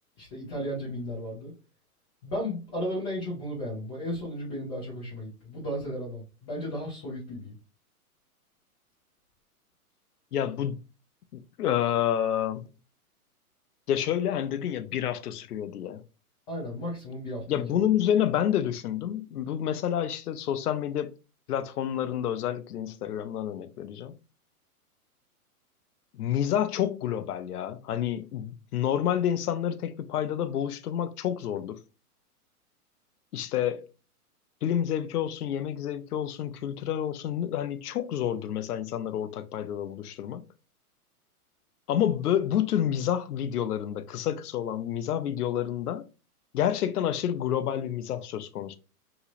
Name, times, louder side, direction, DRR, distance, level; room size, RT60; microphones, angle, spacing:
voice 1, 0.2-1.5 2.2-7.6 16.5-17.8, equal, 10° left, 0.4 m, -34 dB
voice 2, 10.3-10.8 11.3-12.7 13.9-16.0 17.5-21.1 21.5-24.1 26.1-31.8 33.3-33.9 34.6-40.4 41.9-46.0 46.5-48.8, left 10 dB, 85° left, 0.6 m, -29 dB
3.0 x 2.8 x 2.5 m
hypercardioid pair, 135°, 45 cm